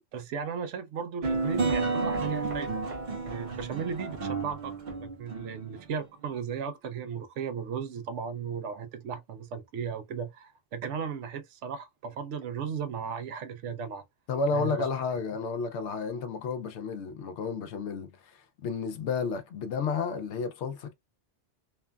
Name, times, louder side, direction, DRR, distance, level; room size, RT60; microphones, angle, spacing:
voice 1, 0.1-2.8 3.3-14.0 14.5-14.9, right 6 dB, 80° right, 0.9 m, -36 dB
sound 1, 1.2-5.8, right 4 dB, 50° right, 0.7 m, -31 dB
voice 2, 14.3-20.9, left 4 dB, 80° left, 0.9 m, -32 dB
3.1 x 2.2 x 2.2 m
omnidirectional pair, 1.2 m